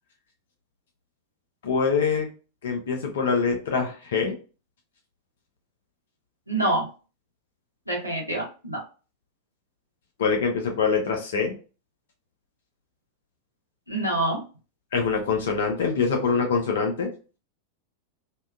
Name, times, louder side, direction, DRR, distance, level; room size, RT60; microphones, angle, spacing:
voice 1, 1.6-2.3 2.6-4.4 10.2-11.5 14.9-17.1, left 5 dB, 60° left, 2 dB, 0.5 m, -24 dB
voice 2, 6.5-6.9 7.9-8.8 13.9-14.4, right 1 dB, 90° right, -2 dB, 0.8 m, -26 dB
2.7 x 2.2 x 2.3 m, 0.35 s
figure-of-eight pair, 90°, 0 cm